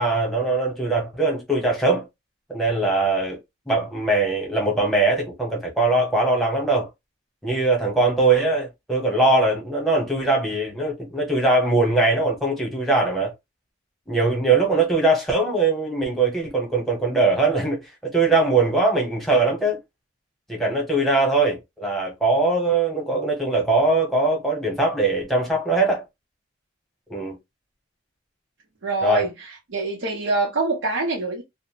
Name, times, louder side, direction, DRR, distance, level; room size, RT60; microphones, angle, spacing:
voice 1, 0.0-2.1 2.5-3.4 3.7-6.9 7.4-13.3 14.1-19.8 20.5-26.0 27.1-27.4 29.0-29.3, right 2 dB, ahead, 0.9 m, -21 dB
voice 2, 28.8-31.4, right 3 dB, 85° right, 0.7 m, -25 dB
2.5 x 2.1 x 2.8 m
head